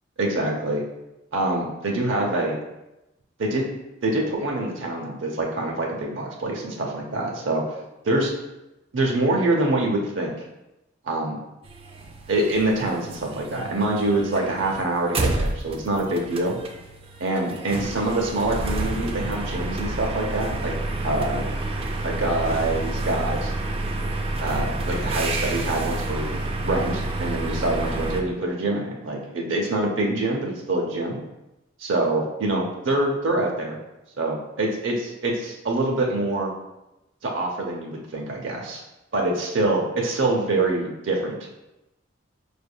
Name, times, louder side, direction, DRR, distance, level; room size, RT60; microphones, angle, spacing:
voice 1, 0.2-0.8 1.3-2.6 3.4-3.7 4.0-7.6 8.0-8.3 8.9-10.3 11.0-11.4 12.3-16.6 17.2-20.7 21.0-21.4 22.0-23.5 24.4-31.2 31.8-33.8 34.2-34.9 35.2-36.5 37.2-38.8 39.1-41.4, right 2 dB, 70° right, -1 dB, 0.7 m, -25 dB
sound 1, 11.6-28.2, right 2 dB, 30° right, 0.4 m, -29 dB
4.9 x 3.4 x 2.2 m, 0.94 s
head